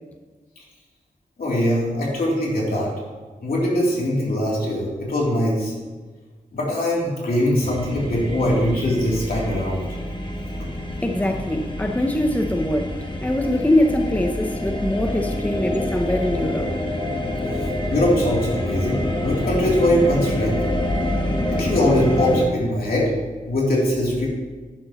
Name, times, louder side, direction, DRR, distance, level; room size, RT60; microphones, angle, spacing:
voice 1, 1.4-2.9 3.4-5.7 6.5-9.9 17.9-20.6 21.5-23.1 23.4-24.3, left 1 dB, 75° left, -4 dB, 3.1 m, -21 dB
sound 1, 7.6-22.5, left 1 dB, 30° left, 1.3 m, -27 dB
voice 2, 11.0-12.9 13.2-16.7, left 1 dB, 10° left, 4 dB, 0.7 m, -22 dB
11.0 x 10.5 x 3.0 m, 1.4 s
wide cardioid pair, 100°, 15 cm